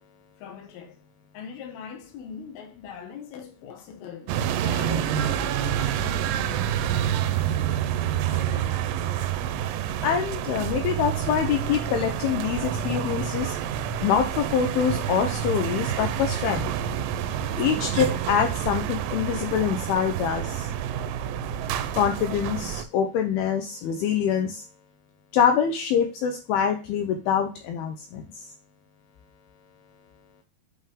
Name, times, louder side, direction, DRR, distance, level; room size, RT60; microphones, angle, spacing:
voice 1, 0.4-1.0 1.3-7.9 8.3-8.8, left 7 dB, 70° left, 2.9 m, -42 dB
sound 1, 4.3-22.9, right 9 dB, 85° right, 2.7 m, -28 dB
voice 2, 10.0-13.6 14.0-16.7 17.6-20.7 21.9-24.6 25.3-28.5, left 8 dB, 85° left, 2.2 m, -25 dB
8.2 x 3.4 x 3.6 m
omnidirectional pair, 5.1 m